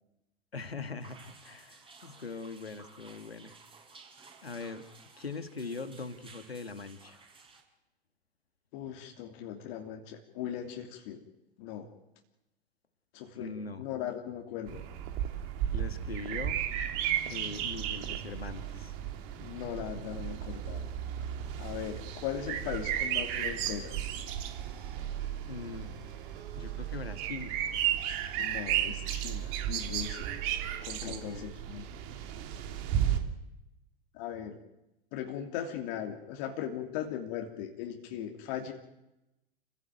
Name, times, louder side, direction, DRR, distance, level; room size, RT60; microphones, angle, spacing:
voice 1, 0.5-3.6 4.4-4.9 5.2-7.2 13.3-13.9 15.7-16.6 17.3-19.0 25.5-25.9 26.5-27.6 31.0-31.5, left 4 dB, 85° left, 11 dB, 2.0 m, -41 dB
sound 1, 1.0-7.6, right 4 dB, 15° right, 5.3 m, -55 dB
voice 2, 8.7-11.2 11.6-11.9 13.1-13.5 13.8-14.9 19.4-20.8 21.6-24.3 28.4-30.3 30.9-31.8 34.1-34.6 35.1-38.7, left 10 dB, 50° left, 3 dB, 2.9 m, -39 dB
sound 2, 14.7-33.2, right 10 dB, 45° right, 3.0 m, -34 dB
sound 3, 23.6-31.0, right 8 dB, 60° right, 3.9 m, -53 dB
28.0 x 16.0 x 9.2 m, 0.93 s
figure-of-eight pair, 95°, 30 cm